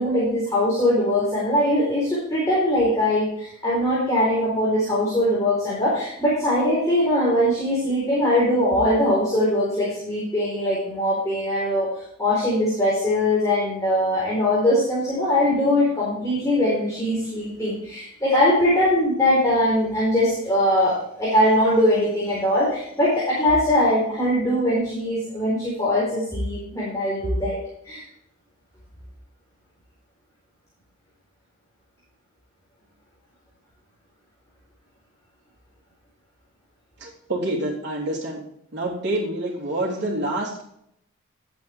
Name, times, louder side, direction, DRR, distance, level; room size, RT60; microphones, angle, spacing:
voice 1, 0.0-11.9 12.2-27.6 27.8-28.0, left 1 dB, 15° left, -8 dB, 4.5 m, -21 dB
voice 2, 37.0-38.4 38.7-40.6, right 1 dB, 55° right, -4 dB, 3.3 m, -27 dB
12.0 x 8.7 x 3.6 m, 0.73 s
head